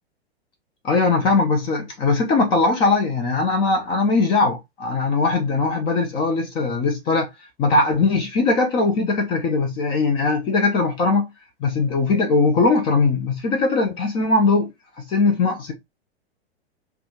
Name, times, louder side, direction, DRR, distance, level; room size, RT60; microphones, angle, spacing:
voice 1, 0.8-7.3 7.6-11.3 11.6-14.7 15.0-15.7, left 3 dB, 15° left, 0.4 m, -20 dB
3.3 x 2.3 x 2.6 m
figure-of-eight pair, 100°, 33 cm